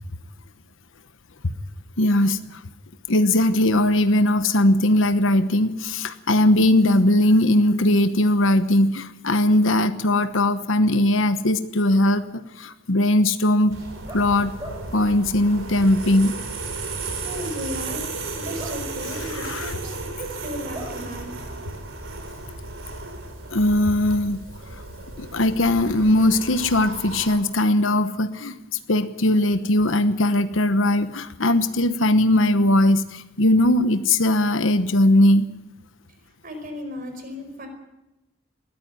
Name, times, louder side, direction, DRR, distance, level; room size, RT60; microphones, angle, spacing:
voice 1, 2.0-2.6 3.1-13.8 14.1-14.5 14.9-16.3 19.2-19.8 23.5-24.4 25.2-28.5 28.9-35.5, left 1 dB, 75° left, 10 dB, 1.1 m, -19 dB
sound 1, 13.6-21.1, right 1 dB, 15° right, 6.0 m, -45 dB
sound 2, 13.7-27.4, right 3 dB, 85° right, 4.2 m, -34 dB
voice 2, 16.9-18.0 18.3-21.3 36.4-37.7, equal, 45° right, 6 dB, 5.0 m, -35 dB
20.0 x 14.0 x 9.5 m, 0.95 s
head